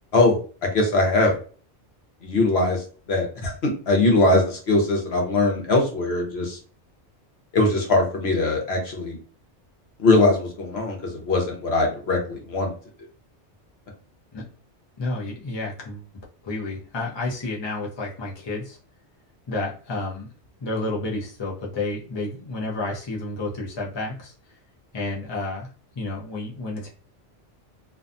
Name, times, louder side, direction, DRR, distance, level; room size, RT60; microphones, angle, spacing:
voice 1, 0.1-1.3 2.2-6.6 7.5-9.2 10.0-12.7, left 2 dB, 65° left, 1 dB, 1.0 m, -21 dB
voice 2, 15.0-16.0 16.4-18.8 19.5-20.3 20.6-24.3 24.9-25.7 26.0-26.9, left 2 dB, 30° left, -2 dB, 0.5 m, -30 dB
2.6 x 2.2 x 2.5 m, 0.39 s
omnidirectional pair, 1.2 m